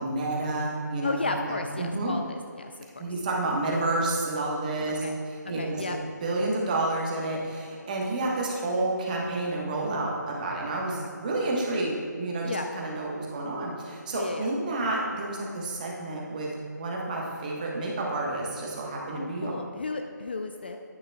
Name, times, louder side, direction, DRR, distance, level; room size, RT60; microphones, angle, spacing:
voice 1, 0.0-2.1 3.0-5.8 6.2-16.5 16.8-19.5, right 2 dB, 25° right, -2 dB, 1.2 m, -30 dB
voice 2, 1.0-3.0 5.0-5.2 5.4-6.0 10.9-11.1 12.4-12.7 14.1-14.5 19.1-20.8, left 3 dB, 35° left, 5 dB, 0.3 m, -34 dB
9.7 x 9.4 x 2.3 m, 2.2 s
figure-of-eight pair, 160°, 10 cm